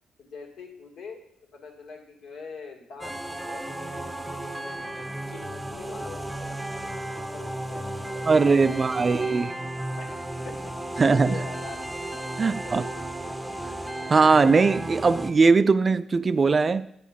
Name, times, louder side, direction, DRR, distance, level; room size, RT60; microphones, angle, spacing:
voice 1, 0.2-1.2 1.5-6.5 7.3-9.3 10.0-11.8 12.4-12.9, left 4 dB, 70° left, 2.0 m, -44 dB
sound 1, 3.0-15.3, right 1 dB, 5° right, 0.9 m, -34 dB
voice 2, 8.3-9.5 11.0-11.4 12.4-12.8 14.1-16.9, right 4 dB, 35° right, 0.4 m, -20 dB
9.3 x 6.5 x 5.2 m
cardioid pair, 90°, 0 cm